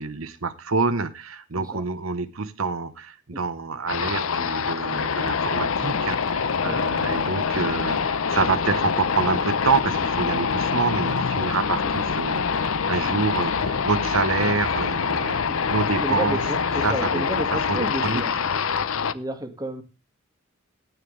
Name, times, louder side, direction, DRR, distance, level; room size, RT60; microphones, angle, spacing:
voice 1, 0.0-15.4 15.7-16.4 16.8-17.2 17.7-18.2, right 4 dB, 75° right, 1.0 m, -27 dB
sound 1, 3.9-19.1, left 6 dB, 70° left, 0.7 m, -25 dB
voice 2, 15.3-18.4 19.1-19.8, right 1 dB, 15° right, 1.8 m, -32 dB
16.0 x 9.2 x 3.3 m
head